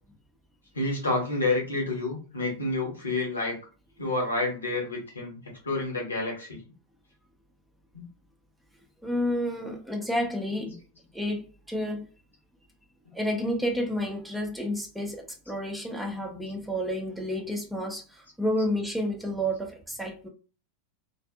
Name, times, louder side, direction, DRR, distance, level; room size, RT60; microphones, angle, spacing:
voice 1, 0.7-3.6 4.0-5.4 5.6-6.6 7.9-8.1 10.7-10.8 13.1-13.2, left 2 dB, 75° left, 1.0 m, -29 dB
voice 2, 9.0-10.8 11.1-12.1 13.1-20.3, equal, 5° right, 0.6 m, -30 dB
2.5 x 2.5 x 2.3 m
figure-of-eight pair, 90°, 0 cm